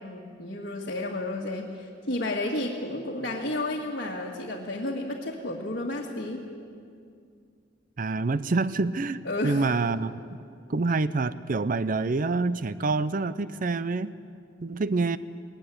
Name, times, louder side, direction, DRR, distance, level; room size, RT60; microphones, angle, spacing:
voice 1, 0.0-6.4 9.3-9.7, left 1 dB, 55° left, -4 dB, 2.0 m, -32 dB
voice 2, 8.0-10.2 10.7-14.1 14.6-15.2, right 3 dB, 45° right, 15 dB, 0.6 m, -27 dB
20.0 x 16.5 x 9.9 m, 2.3 s
head